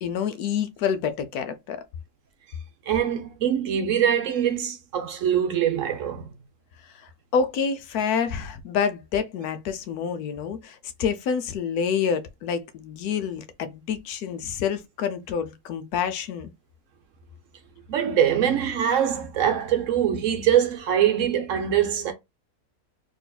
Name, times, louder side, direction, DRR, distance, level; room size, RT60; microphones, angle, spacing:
voice 1, 0.0-1.8 7.3-16.5, left 7 dB, 75° left, 1.1 m, -27 dB
voice 2, 2.9-6.3 17.9-22.1, right 9 dB, 65° right, 0.9 m, -23 dB
3.9 x 2.8 x 2.2 m
omnidirectional pair, 1.6 m